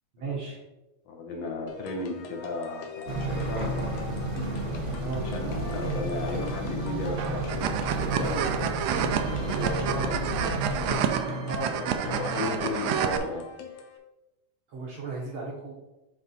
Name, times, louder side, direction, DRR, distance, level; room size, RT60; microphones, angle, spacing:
voice 1, 0.1-0.6 5.0-5.3 9.8-10.1 11.4-12.2 14.7-15.7, right 3 dB, 65° right, -2 dB, 1.4 m, -35 dB
voice 2, 1.1-4.2 5.2-8.6 9.3-10.2 10.4-10.6 11.8-13.5, left 2 dB, 65° left, 1 dB, 2.0 m, -35 dB
sound 1, 1.7-14.0, left 4 dB, 85° left, 2.2 m, -41 dB
sound 2, 3.1-10.9, right 2 dB, 40° right, 1.2 m, -32 dB
sound 3, 7.2-13.2, right 8 dB, 80° right, 1.5 m, -29 dB
9.3 x 3.5 x 4.1 m, 1.0 s
omnidirectional pair, 3.3 m